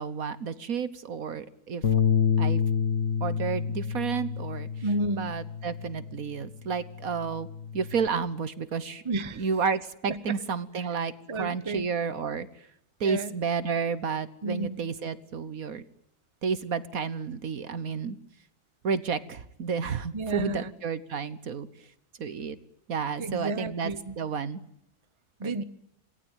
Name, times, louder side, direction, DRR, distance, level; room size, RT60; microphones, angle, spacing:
voice 1, 0.0-1.8 2.4-2.6 3.2-4.7 5.1-7.5 7.7-9.0 9.4-12.5 13.0-15.8 16.4-18.2 18.8-21.7 22.2-22.6 22.9-24.6 25.4-25.6, right 6 dB, 60° right, 14 dB, 1.6 m, -31 dB
Bass guitar, 1.8-6.3 6.7-8.1, left 7 dB, 50° left, 1.5 m, -28 dB
voice 2, 4.8-5.3 9.0-9.5 10.1-10.4 11.0-11.9 13.0-13.4 14.4-14.7 20.1-20.7 23.2-24.2 25.4-25.6, right 2 dB, 20° right, 12 dB, 1.0 m, -32 dB
27.5 x 19.0 x 9.2 m, 0.77 s
omnidirectional pair, 1.7 m